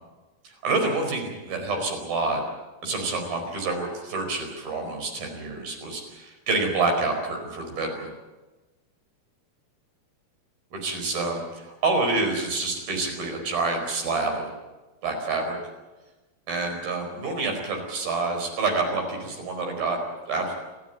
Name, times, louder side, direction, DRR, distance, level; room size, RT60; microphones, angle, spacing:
voice 1, 0.4-2.4 2.8-8.1 10.7-14.5 15.0-15.6 16.5-20.0 20.3-20.5, right 3 dB, 80° right, 3 dB, 6.6 m, -27 dB
30.0 x 13.5 x 9.3 m, 1.2 s
omnidirectional pair, 4.1 m